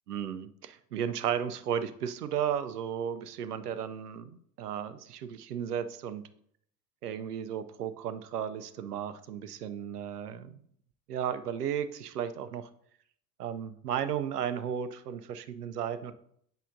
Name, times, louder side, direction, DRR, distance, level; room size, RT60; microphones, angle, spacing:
voice 1, 0.1-6.2 7.0-10.6 11.1-12.7 13.4-16.1, right 8 dB, 75° right, 12 dB, 0.7 m, -34 dB
8.9 x 6.2 x 2.7 m, 0.67 s
figure-of-eight pair, 75°, 48 cm